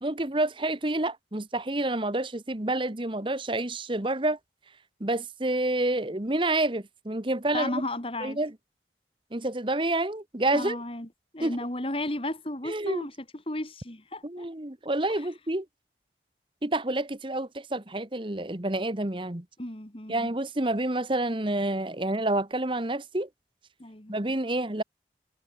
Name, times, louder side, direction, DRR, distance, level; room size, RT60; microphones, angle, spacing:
voice 1, 0.0-4.4 5.0-7.8 8.2-8.5 9.3-10.8 11.4-11.6 12.6-13.0 14.2-15.6 16.6-19.4 20.1-23.3 24.1-24.8, right 2 dB, 30° right, 1.3 m, -28 dB
voice 2, 7.5-8.4 10.5-11.1 11.3-14.5 15.1-15.3 19.6-20.3 23.8-24.1, left 1 dB, 30° left, 2.9 m, -34 dB
head